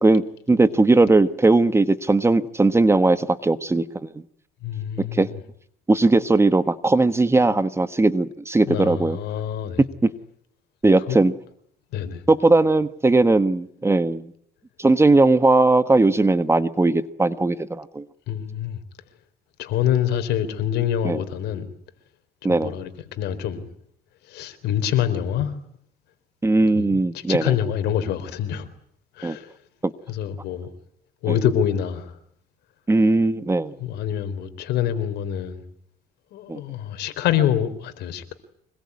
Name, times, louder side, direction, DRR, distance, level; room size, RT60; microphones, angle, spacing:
voice 1, 0.0-4.2 5.0-5.3 5.9-9.2 10.0-10.1 10.8-11.3 12.3-14.3 14.8-18.0 21.0-21.2 22.4-22.7 26.4-27.5 29.2-29.4 29.8-29.9 31.3-31.4 32.9-33.7 36.5-36.6, right 2 dB, 15° right, 1.4 m, -19 dB
voice 2, 4.6-5.4 8.7-9.8 11.1-11.2 11.9-12.2 18.3-18.8 19.6-21.7 22.5-23.7 24.2-25.6 26.7-28.7 29.2-29.5 30.1-30.7 31.2-32.2 33.8-35.6 36.3-38.3, left 10 dB, 80° left, 4.0 m, -26 dB
25.5 x 21.5 x 9.7 m
cardioid pair, 110°, 17 cm